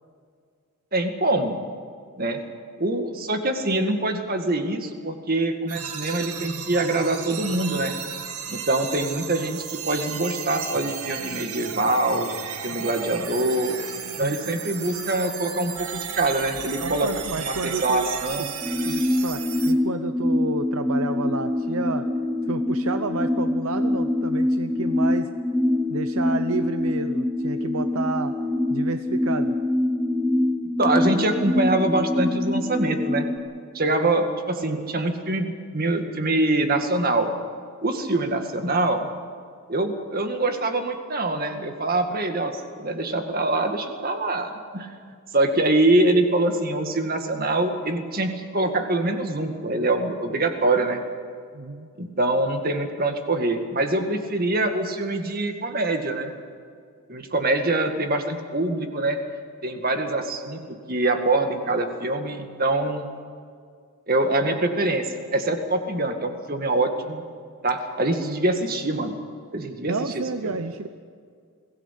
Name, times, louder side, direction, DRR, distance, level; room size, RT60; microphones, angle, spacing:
voice 1, 0.9-1.6 2.2-2.4 2.8-7.9 8.5-12.3 12.6-13.8 14.2-18.5 30.8-33.3 33.7-37.3 37.8-39.1 39.7-42.5 42.8-44.9 45.3-51.0 52.0-56.3 57.1-59.2 59.6-63.1 64.1-67.2 67.6-69.2 69.5-69.9 70.4-70.6, right 2 dB, 40° right, 5 dB, 2.0 m, -24 dB
sound 1, 5.7-19.7, right 7 dB, 90° right, 1.8 m, -34 dB
voice 2, 14.2-14.5 16.8-18.5 18.8-22.0 22.5-25.3 25.9-28.3 28.7-29.6 34.0-34.1 51.5-51.9 57.4-57.5 69.9-70.9, right 4 dB, 70° right, 9 dB, 0.8 m, -30 dB
sound 2, 18.6-33.4, left 1 dB, ahead, 1.8 m, -24 dB
23.0 x 17.0 x 8.4 m, 2.1 s
head